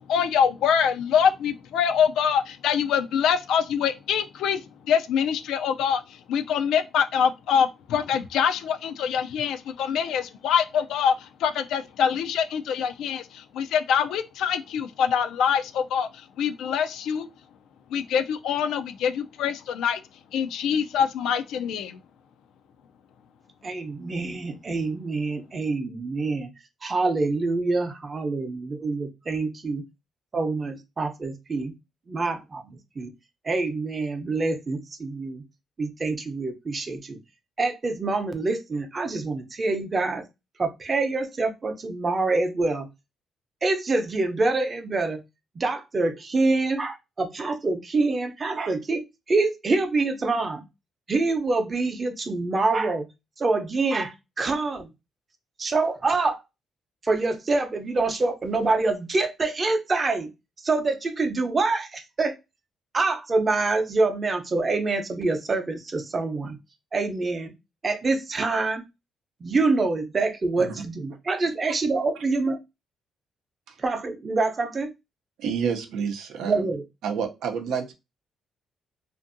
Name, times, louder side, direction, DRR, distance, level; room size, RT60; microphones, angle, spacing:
voice 1, 0.1-17.3 17.9-20.0 20.3-22.0, left 7 dB, 80° left, 0.3 m, -24 dB
voice 2, 23.6-26.5 26.8-29.8 30.3-31.7 32.1-33.1 33.4-35.4 35.8-37.2 37.6-40.2 40.6-42.9 43.6-45.2 45.5-49.0 49.3-50.6 51.1-53.1 53.4-54.9 55.6-56.4 57.0-60.3 60.6-62.3 62.9-66.6 66.9-67.5 67.8-68.8 69.4-72.6 73.8-74.9 76.4-76.8, right 3 dB, 35° right, 0.6 m, -26 dB
voice 3, 75.4-76.6 77.0-77.9, right 6 dB, 85° right, 0.5 m, -29 dB
2.6 x 2.5 x 2.5 m
cardioid pair, 90°, 0 cm